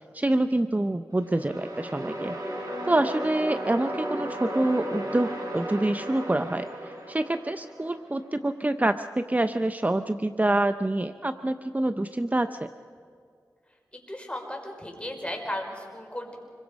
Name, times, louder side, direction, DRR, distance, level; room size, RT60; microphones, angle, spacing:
voice 1, 0.1-2.3 2.9-12.7, right 1 dB, 25° right, 10 dB, 0.7 m, -26 dB
sound 1, 1.1-8.1, equal, 75° right, 6.1 m, -35 dB
voice 2, 14.1-16.4, left 1 dB, 15° left, 1 dB, 5.2 m, -35 dB
26.0 x 22.5 x 5.3 m, 2.3 s
cardioid pair, 45°, 7 cm